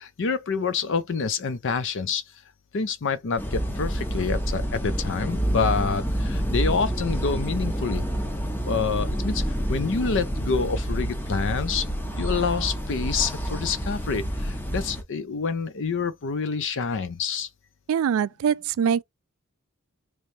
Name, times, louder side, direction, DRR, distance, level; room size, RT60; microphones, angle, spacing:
voice 1, 0.0-2.2 2.7-8.1 8.6-11.9 12.2-17.5, left 5 dB, 60° left, 0.5 m, -27 dB
sound 1, 3.4-15.0, equal, 10° left, 0.6 m, -28 dB
voice 2, 17.9-19.0, right 8 dB, 70° right, 0.3 m, -23 dB
3.1 x 2.8 x 3.1 m
head